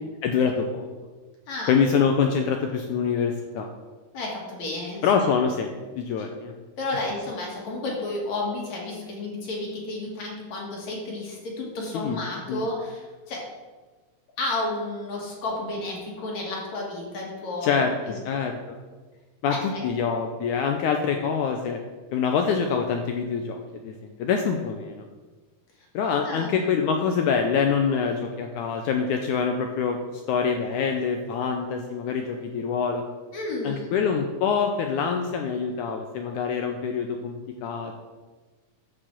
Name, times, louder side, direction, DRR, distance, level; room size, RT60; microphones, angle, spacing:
voice 1, 0.2-0.9 1.7-3.7 5.0-6.5 6.9-7.0 11.9-12.2 12.5-12.6 17.6-18.8 19.4-21.8 22.1-25.0 25.9-33.0 33.6-38.0, left 6 dB, 80° left, 4 dB, 1.8 m, -25 dB
voice 2, 1.5-1.8 4.1-5.0 6.8-13.4 14.4-17.7 18.0-18.1 19.5-19.8 26.2-26.5 33.3-33.9, left 2 dB, 55° left, -2 dB, 2.9 m, -32 dB
11.0 x 4.9 x 7.4 m, 1.3 s
omnidirectional pair, 4.2 m